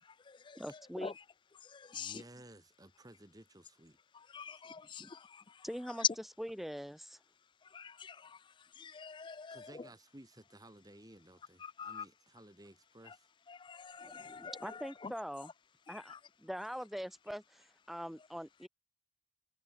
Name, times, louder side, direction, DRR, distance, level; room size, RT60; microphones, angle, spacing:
voice 1, 0.5-1.2 5.0-5.1 5.6-6.0 6.4-7.2 14.0-15.5 15.9-16.1 16.4-18.7, equal, ahead, 0.7 m, -43 dB
voice 2, 1.9-4.0 9.5-13.2, right 1 dB, 20° right, 1.8 m, -56 dB
voice 3, 4.3-5.0 7.7-8.1 8.8-9.9 11.6-12.0 13.5-15.1 16.1-16.2, left 5 dB, 25° left, 0.3 m, -46 dB
head